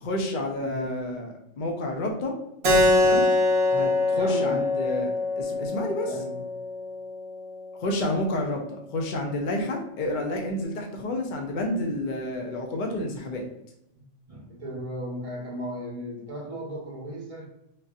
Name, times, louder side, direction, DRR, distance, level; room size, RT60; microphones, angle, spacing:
voice 1, 0.0-2.4 3.0-3.3 3.7-6.1 7.8-13.5, left 1 dB, 50° left, 1 dB, 0.6 m, -30 dB
Keyboard (musical), 2.6-7.7, left 2 dB, 60° right, 1.0 m, -24 dB
voice 2, 4.1-4.6 6.0-6.4 13.9-14.0 14.3-17.5, right 1 dB, 30° right, -2 dB, 0.9 m, -36 dB
4.0 x 2.7 x 2.4 m, 0.82 s
omnidirectional pair, 1.3 m